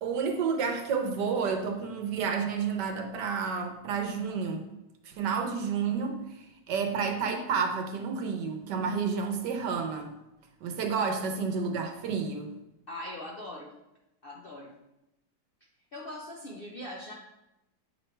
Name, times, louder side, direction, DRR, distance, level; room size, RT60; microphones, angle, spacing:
voice 1, 0.0-4.7 5.0-10.1 10.6-12.5, right 5 dB, 75° right, 4 dB, 1.4 m, -30 dB
voice 2, 12.9-13.7 14.2-14.7 15.9-17.1, left 1 dB, 55° left, -2 dB, 0.6 m, -41 dB
7.5 x 3.2 x 4.4 m, 0.92 s
omnidirectional pair, 1.9 m